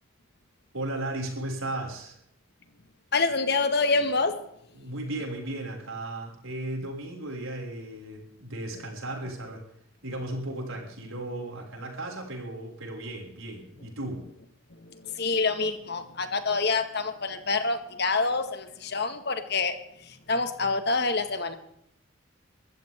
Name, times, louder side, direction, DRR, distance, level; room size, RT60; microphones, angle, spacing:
voice 1, 0.7-2.2 4.7-9.6 10.0-14.2, right 1 dB, 80° right, 0 dB, 6.2 m, -35 dB
voice 2, 3.1-4.3 14.8-19.8 20.3-21.6, left 3 dB, 50° left, 8 dB, 1.9 m, -26 dB
23.5 x 15.0 x 3.8 m, 0.71 s
head